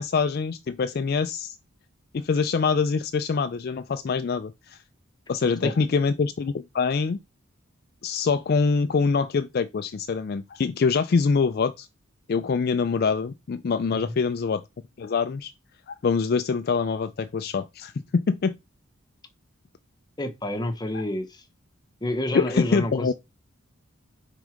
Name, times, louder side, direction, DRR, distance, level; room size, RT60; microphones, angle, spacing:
voice 1, 0.0-1.6 2.1-4.8 5.3-7.2 8.0-11.9 12.3-14.6 15.0-15.5 15.9-18.6 22.3-23.1, left 5 dB, 45° left, 0.3 m, -24 dB
voice 2, 20.2-21.4 22.0-23.1, left 1 dB, 20° left, 0.9 m, -29 dB
6.2 x 3.7 x 5.0 m
head